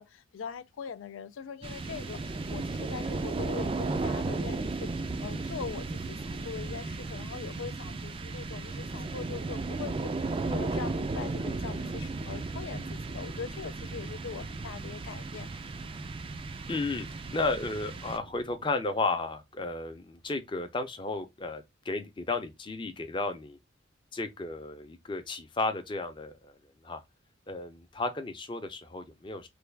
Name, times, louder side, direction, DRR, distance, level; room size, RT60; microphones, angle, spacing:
voice 1, 0.0-4.9 5.2-15.5, left 6 dB, 90° left, 0.4 m, -42 dB
sound 1, 1.6-18.6, right 3 dB, 25° right, 0.3 m, -35 dB
voice 2, 16.7-17.1 17.3-23.6 24.1-26.5 26.8-27.0 27.5-29.5, left 3 dB, 25° left, 0.6 m, -33 dB
3.3 x 2.3 x 3.3 m
head